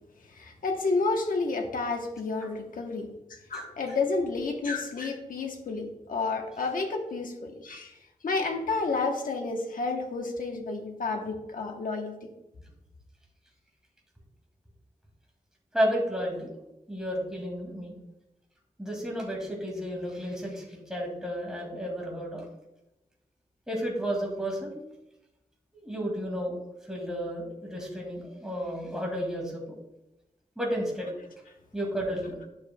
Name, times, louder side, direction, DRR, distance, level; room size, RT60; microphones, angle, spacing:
voice 1, 0.2-8.0 8.2-12.3, left 3 dB, 90° left, 3 dB, 1.0 m, -30 dB
voice 2, 3.5-3.9 15.7-16.5 16.9-18.0 18.8-22.4 23.7-24.8 25.7-29.8 30.6-31.2 31.7-32.4, equal, 5° right, -1 dB, 2.1 m, -32 dB
10.0 x 6.5 x 2.2 m, 0.92 s
wide cardioid pair, 125°, 14 cm